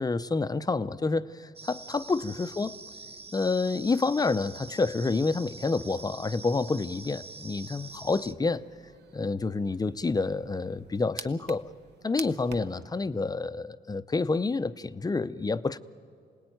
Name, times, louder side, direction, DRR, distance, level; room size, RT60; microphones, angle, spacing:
voice 1, 0.0-2.8 3.3-8.6 9.1-11.7 12.0-15.8, left 3 dB, 20° left, 13 dB, 0.6 m, -28 dB
sound 1, 1.6-8.3, right 3 dB, 30° right, 1.1 m, -45 dB
sound 2, 7.7-12.9, right 7 dB, 55° right, 0.9 m, -47 dB
27.5 x 19.0 x 9.2 m, 2.3 s
cardioid pair, 90°, 20 cm